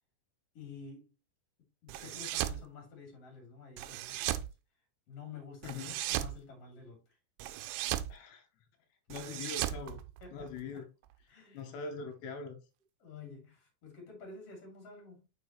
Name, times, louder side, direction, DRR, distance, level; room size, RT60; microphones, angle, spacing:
voice 1, 0.5-1.1 1.8-4.5 5.1-7.2 10.2-10.8 11.3-11.7 13.0-15.2, left 4 dB, 40° left, 3.5 m, -50 dB
sound 1, 1.9-2.6 3.8-4.5 5.6-6.4 7.4-8.1 9.1-10.6, right 14 dB, 80° right, 2.4 m, -36 dB
voice 2, 5.6-5.9 8.1-8.5 9.1-10.0 10.3-10.8 11.5-12.6, left 4 dB, 85° left, 3.2 m, -42 dB
6.4 x 6.3 x 3.0 m
omnidirectional pair, 4.8 m